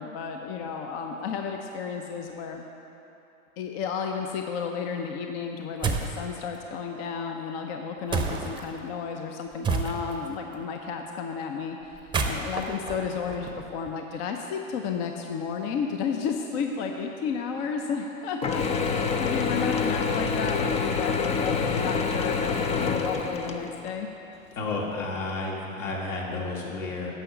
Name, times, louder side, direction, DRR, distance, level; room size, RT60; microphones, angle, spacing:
voice 1, 0.0-2.6 3.6-24.1, left 6 dB, 45° left, 3 dB, 0.8 m, -32 dB
sound 1, 5.8-6.2 8.1-8.6 9.6-10.3 11.9-13.9, right 4 dB, 10° right, 0.7 m, -29 dB
Mechanisms / Drill, 18.4-23.9, left 5 dB, 15° left, 0.4 m, -27 dB
voice 2, 24.6-27.1, left 3 dB, 65° left, -2 dB, 2.3 m, -31 dB
10.0 x 6.2 x 6.7 m, 2.9 s
hypercardioid pair, 100°, 41 cm